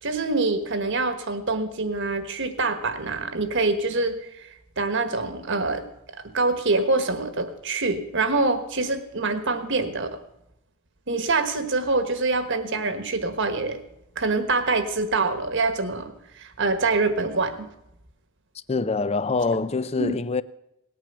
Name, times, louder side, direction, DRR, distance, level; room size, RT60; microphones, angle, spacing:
voice 1, 0.0-4.5 4.8-5.9 6.3-10.2 11.1-13.8 14.2-17.6 20.0-20.1, right 3 dB, 55° right, 1.4 m, -25 dB
voice 2, 18.7-20.4, left 3 dB, 30° left, 0.4 m, -25 dB
18.5 x 9.1 x 7.0 m
head